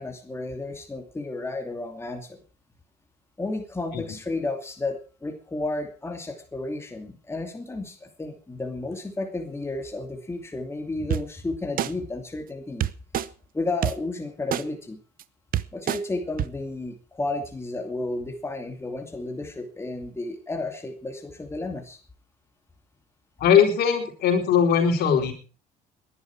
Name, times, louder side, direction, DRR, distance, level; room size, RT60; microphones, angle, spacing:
voice 1, 0.0-2.4 3.4-12.9 13.5-15.0 15.7-22.0, left 2 dB, 15° left, 4 dB, 2.6 m, -32 dB
sound 1, 11.1-11.2 11.8-11.9 12.8-13.3 13.8-13.9 14.5-14.6 15.2-15.3 15.5-16.0 16.4-16.5, right 12 dB, 55° right, 0.8 m, -25 dB
voice 2, 23.4-25.3, left 7 dB, 70° left, 3 dB, 4.4 m, -20 dB
20.0 x 11.0 x 4.7 m, 0.37 s
cardioid pair, 110°, 17 cm